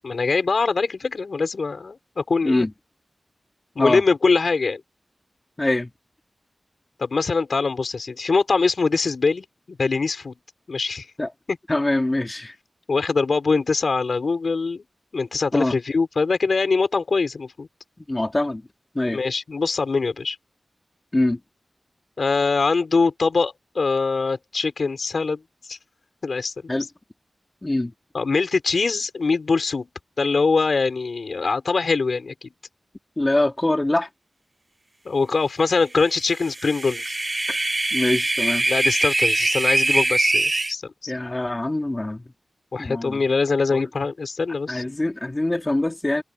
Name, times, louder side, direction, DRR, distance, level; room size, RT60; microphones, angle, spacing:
voice 1, 0.0-2.7 3.7-4.8 7.0-10.3 10.7-11.1 11.5-11.6 12.9-14.8 15.1-17.7 19.1-20.4 22.2-25.4 25.7-25.8 26.2-26.5 28.1-29.9 30.2-32.5 35.0-37.2 38.7-41.1 42.7-44.8, left 4 dB, 75° left, 6.6 m, -23 dB
voice 2, 5.6-5.9 11.2-11.3 11.7-12.5 15.5-15.8 18.0-18.6 18.9-19.2 21.1-21.4 26.7-26.9 27.6-27.9 33.2-34.1 37.5-38.7 41.1-42.2 42.7-43.2 43.7-43.8 44.7-46.2, left 1 dB, 30° left, 3.0 m, -24 dB
sound 1, 36.4-40.7, right 2 dB, 40° right, 0.5 m, -22 dB
wide cardioid pair, 55°, 0 cm